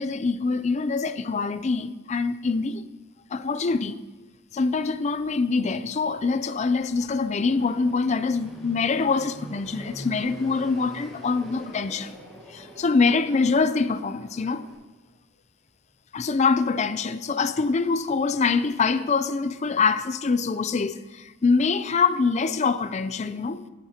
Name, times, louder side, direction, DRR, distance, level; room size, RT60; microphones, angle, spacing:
voice 1, 0.0-2.8 3.3-3.9 4.5-12.1 12.5-14.7 16.1-23.7, left 4 dB, 35° left, 0.4 m, -24 dB
Fixed-wing aircraft airplane, 4.5-14.7, equal, ahead, 3.5 m, -45 dB
16.5 x 7.7 x 2.9 m
head